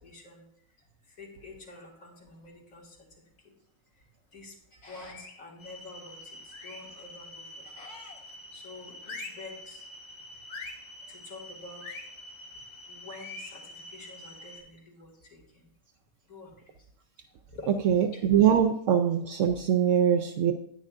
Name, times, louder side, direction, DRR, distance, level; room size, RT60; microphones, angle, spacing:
voice 1, 0.0-0.4 1.2-3.0 4.3-6.3 6.6-7.9 8.5-9.8 11.1-11.9 12.9-15.4 16.3-16.5 17.5-17.7 18.1-18.2, left 3 dB, 75° left, -3 dB, 2.8 m, -47 dB
sound 1, 5.0-5.5 6.5-7.0 7.8-8.3 9.0-9.5 10.5-10.9 11.8-12.1 13.1-13.6, left 3 dB, 55° left, 1.3 m, -43 dB
sound 2, 5.6-14.6, equal, 30° left, 1.6 m, -47 dB
voice 2, 17.8-20.5, right 9 dB, 70° right, 6 dB, 0.9 m, -23 dB
9.8 x 9.7 x 2.5 m, 0.71 s
omnidirectional pair, 1.4 m